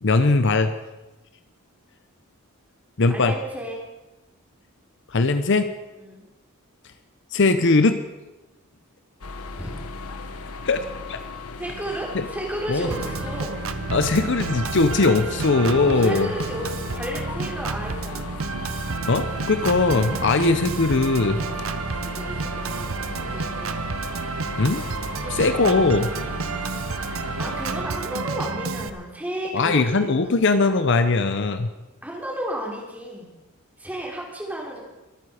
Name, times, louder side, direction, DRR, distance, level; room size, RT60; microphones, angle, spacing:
voice 1, 0.0-0.7 3.0-3.3 5.1-5.7 7.3-8.0 10.6-11.2 12.1-12.2 12.7-12.9 13.9-16.3 19.1-21.4 24.6-24.8 25.3-26.1 29.5-31.7, left 3 dB, 55° left, 9 dB, 0.8 m, -20 dB
voice 2, 3.1-3.8 6.0-6.2 9.6-9.8 11.6-13.6 15.8-18.4 22.0-23.7 25.1-25.5 27.1-30.4 32.0-33.3 33.8-34.8, right 1 dB, 5° right, -2 dB, 3.4 m, -33 dB
sound 1, 9.2-27.8, left 3 dB, 90° left, 1.0 m, -37 dB
Organ, 12.9-28.9, right 4 dB, 70° right, 0.8 m, -30 dB
24.0 x 9.2 x 5.0 m, 1.1 s
head